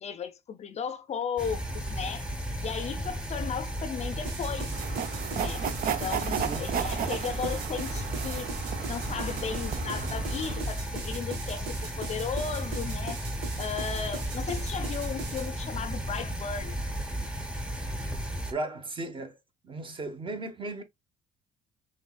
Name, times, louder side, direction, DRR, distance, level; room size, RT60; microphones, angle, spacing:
voice 1, 0.0-2.3 2.6-4.7 5.3-5.7 6.0-8.5 8.9-13.2 13.6-16.8, left 7 dB, 40° left, 0.5 m, -35 dB
sound 1, 1.4-18.5, equal, 5° right, 0.9 m, -34 dB
sound 2, 4.2-15.5, right 5 dB, 85° right, 1.3 m, -41 dB
sound 3, 4.7-10.6, right 8 dB, 60° right, 0.6 m, -34 dB
voice 2, 6.3-6.7 18.5-19.4 19.6-20.8, right 2 dB, 30° right, 1.0 m, -36 dB
5.5 x 3.2 x 2.3 m
cardioid pair, 110°, 17 cm